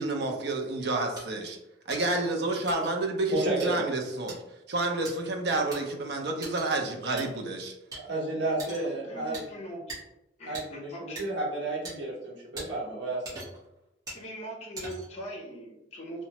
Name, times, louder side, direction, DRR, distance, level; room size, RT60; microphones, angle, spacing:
voice 1, 0.0-1.6 1.9-4.4 4.7-7.7, right 2 dB, 65° right, 3 dB, 0.5 m, -29 dB
sound 1, 1.2-1.3 1.9-2.0 2.7-2.9 3.6-3.7 4.3-4.4 5.0-5.1 5.7-5.8 6.4-6.7 7.2-7.3 7.9-8.0 8.6-8.9 9.3-9.5 9.9-10.0 10.5-10.7 11.2-11.3 11.8-11.9 12.6-12.7 13.2-13.6 14.1-14.2 14.8-15.2, right 2 dB, 20° right, 1.0 m, -40 dB
voice 2, 3.3-3.8 7.9-9.4 10.5-13.4, right 2 dB, 80° right, -4 dB, 1.0 m, -32 dB
voice 3, 8.6-10.0 10.4-11.3 14.1-16.2, right 1 dB, 35° left, -2 dB, 0.6 m, -41 dB
2.9 x 2.1 x 2.8 m, 0.88 s
head